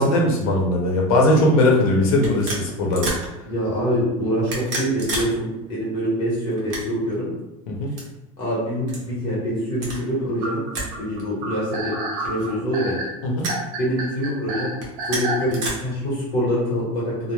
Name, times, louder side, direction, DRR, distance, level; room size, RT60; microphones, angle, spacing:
voice 1, 0.0-3.1 7.7-7.9 13.2-13.5, left 1 dB, 85° left, -1 dB, 0.7 m, -19 dB
sound 1, 1.1-1.3 2.2-3.3 4.3-5.3 5.6-5.7 6.5-7.1 7.9-8.0 8.9-9.0 9.7-10.0 10.7-10.9 11.2-11.3 12.2-12.8 13.4-13.6 14.7-15.7, right 2 dB, 40° right, 0.7 m, -30 dB
voice 2, 3.5-7.3 8.4-10.6 11.0-11.9 12.2-13.0 13.8-14.7 15.1-17.3, equal, 30° left, -7 dB, 1.1 m, -25 dB
sound 2, 10.4-15.5, right 2 dB, 80° right, 0.7 m, -30 dB
2.3 x 2.1 x 3.0 m, 0.96 s
supercardioid pair, 175°, 18 cm